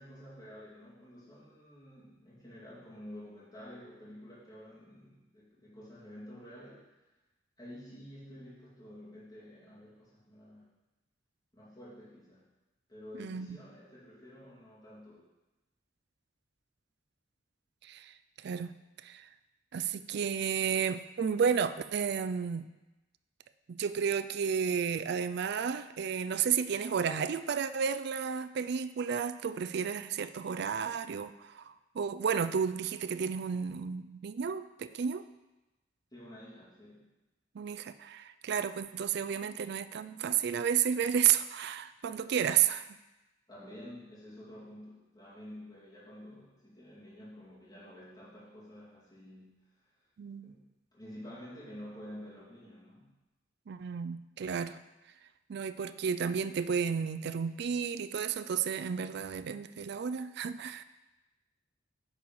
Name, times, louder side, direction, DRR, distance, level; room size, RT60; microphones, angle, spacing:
voice 1, 0.0-6.9 7.6-10.7 11.5-12.5 12.9-15.3 36.1-37.1 43.5-49.5 50.4-50.7 50.9-53.1, left 1 dB, 20° left, -9 dB, 2.4 m, -50 dB
voice 2, 13.2-13.6 17.8-18.7 19.0-19.3 19.7-22.7 23.7-35.2 37.5-42.8 50.2-50.6 53.7-54.8 55.5-60.8, right 7 dB, 60° right, 12 dB, 0.4 m, -32 dB
9.2 x 4.7 x 5.4 m, 1.0 s
head